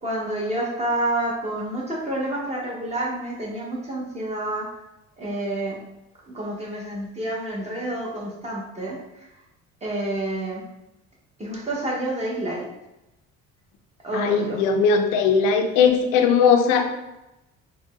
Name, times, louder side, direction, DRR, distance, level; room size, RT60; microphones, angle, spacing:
voice 1, 0.0-4.7 5.2-5.8 6.3-9.0 9.8-10.6 11.4-12.7 14.0-14.6, right 1 dB, 20° right, -4 dB, 1.0 m, -28 dB
voice 2, 14.1-16.9, left 6 dB, 85° left, 5 dB, 0.5 m, -19 dB
3.8 x 2.2 x 2.3 m, 0.94 s
supercardioid pair, 85°, 31 cm